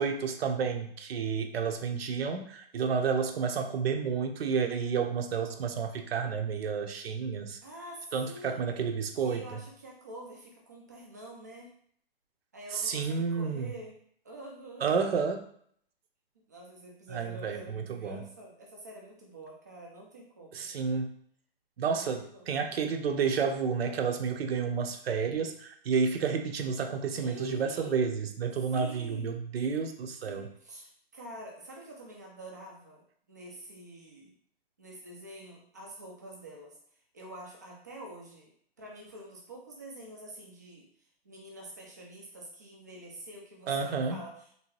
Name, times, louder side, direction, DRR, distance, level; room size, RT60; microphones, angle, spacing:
voice 1, 0.0-7.6 8.1-9.6 12.7-13.7 14.8-15.4 17.1-18.2 20.5-21.1 21.8-30.5 43.7-44.2, right 6 dB, 80° right, 6 dB, 0.6 m, -30 dB
voice 2, 7.6-8.7 9.2-11.7 12.5-14.0 14.2-14.9 16.4-20.7 21.8-22.5 27.2-28.0 28.7-29.3 30.2-34.3 34.8-36.7 37.1-38.5 38.8-40.9 41.2-44.6, right 1 dB, 20° right, -2 dB, 0.3 m, -47 dB
3.3 x 2.7 x 3.1 m, 0.62 s
hypercardioid pair, 165°, 30 cm